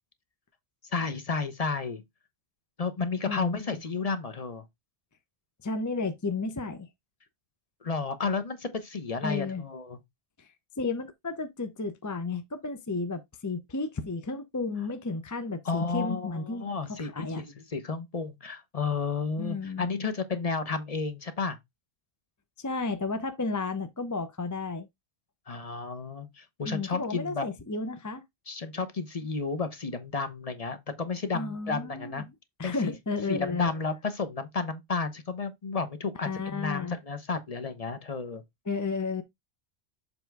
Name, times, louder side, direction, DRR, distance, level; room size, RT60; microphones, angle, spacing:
voice 1, 0.8-2.0 2.8-4.7 7.8-10.0 15.6-21.6 25.5-27.5 28.5-32.2 32.6-32.9 33.3-38.4, left 4 dB, 35° left, 0.9 m, -32 dB
voice 2, 3.3-3.6 5.6-6.9 9.2-9.6 10.4-17.4 19.4-19.9 22.6-24.9 26.6-28.2 31.3-32.2 32.6-33.7 36.2-36.9 38.7-39.2, left 3 dB, 20° left, 0.5 m, -33 dB
7.2 x 3.3 x 4.6 m
omnidirectional pair, 1.1 m